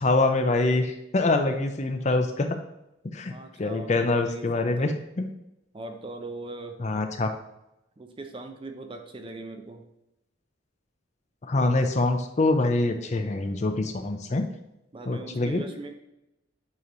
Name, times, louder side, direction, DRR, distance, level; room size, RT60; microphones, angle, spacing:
voice 1, 0.0-2.6 3.1-3.3 3.6-5.3 6.8-7.3 11.4-14.5 15.1-15.6, left 2 dB, 35° left, 6 dB, 0.5 m, -25 dB
voice 2, 3.3-4.9 5.7-6.8 8.0-9.9 14.9-15.9, right 2 dB, 25° right, 5 dB, 0.5 m, -40 dB
8.5 x 3.0 x 3.8 m, 0.86 s
head